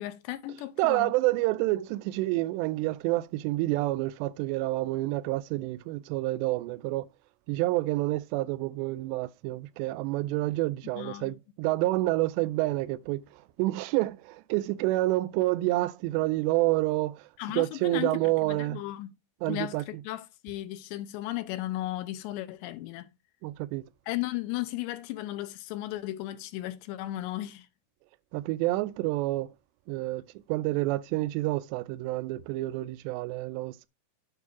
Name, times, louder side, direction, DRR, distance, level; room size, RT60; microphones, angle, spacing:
voice 1, 0.0-1.1 11.0-11.3 17.4-18.1 18.4-19.1 19.5-23.1 24.1-27.7, left 15 dB, 85° left, 3.0 m, -35 dB
voice 2, 0.8-7.1 7.5-18.8 19.4-20.0 23.4-23.8 28.3-29.5 29.9-30.2 30.5-33.9, right 18 dB, 85° right, 2.8 m, -28 dB
9.0 x 3.5 x 5.9 m
omnidirectional pair, 5.0 m